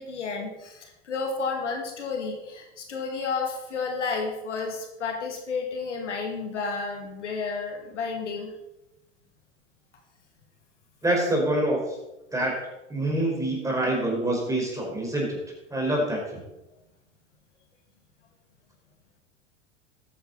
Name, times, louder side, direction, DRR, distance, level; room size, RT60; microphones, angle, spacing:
voice 1, 0.0-8.5, left 4 dB, 85° left, 2 dB, 2.4 m, -31 dB
voice 2, 11.0-12.0 12.3-12.5 12.9-15.4 15.7-16.4, right 1 dB, 10° right, -2 dB, 4.7 m, -26 dB
13.5 x 9.3 x 4.1 m, 0.96 s
hypercardioid pair, 90°, 35 cm